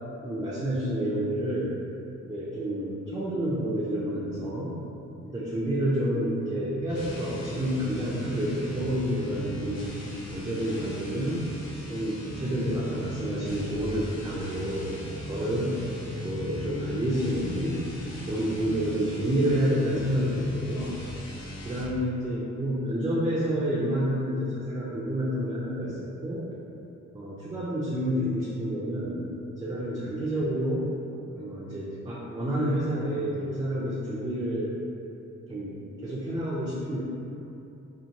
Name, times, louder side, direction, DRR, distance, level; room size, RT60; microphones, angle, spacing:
voice 1, 0.2-1.8 2.3-4.7 5.2-9.9 10.3-11.5 11.9-14.9 15.3-15.8 16.2-17.8 18.3-21.0 21.6-26.5 27.1-29.3 29.6-30.9 31.4-34.7 35.5-37.0, equal, 15° right, -7 dB, 0.3 m, -29 dB
sound 1, 6.8-22.0, left 1 dB, 60° left, 0.6 m, -38 dB
2.6 x 2.1 x 2.8 m, 2.8 s
cardioid pair, 90°, 30 cm